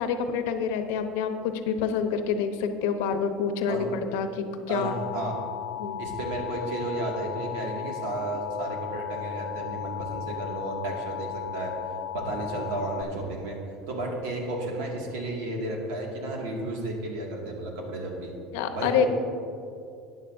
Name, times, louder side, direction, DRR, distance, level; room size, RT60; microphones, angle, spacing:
voice 1, 0.0-4.9 5.8-6.0 18.5-19.1, left 6 dB, 80° left, 8 dB, 0.8 m, -27 dB
voice 2, 4.7-5.4 6.0-11.7 12.1-13.6 13.9-18.3 18.7-19.1, right 2 dB, 85° right, -1 dB, 2.1 m, -32 dB
Alarm, 4.8-13.0, left 12 dB, 55° left, 0.5 m, -36 dB
13.5 x 9.3 x 2.7 m, 2.5 s
supercardioid pair, 140°, 0 cm